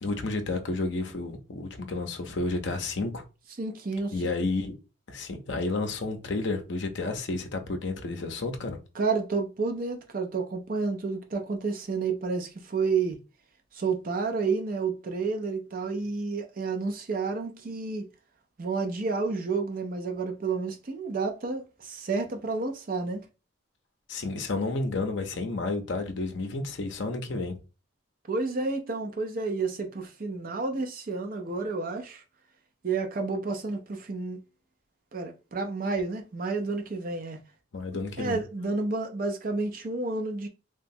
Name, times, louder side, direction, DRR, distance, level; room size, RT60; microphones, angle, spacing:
voice 1, 0.0-3.2 4.1-4.7 5.1-8.8 24.1-27.6 37.7-38.4, left 3 dB, 60° left, 0.6 m, -31 dB
voice 2, 3.6-4.1 9.0-13.2 13.7-18.1 18.6-23.2 28.3-32.2 32.8-34.4 35.1-37.4 38.2-40.5, right 4 dB, 45° right, 0.5 m, -30 dB
3.0 x 2.2 x 2.6 m
head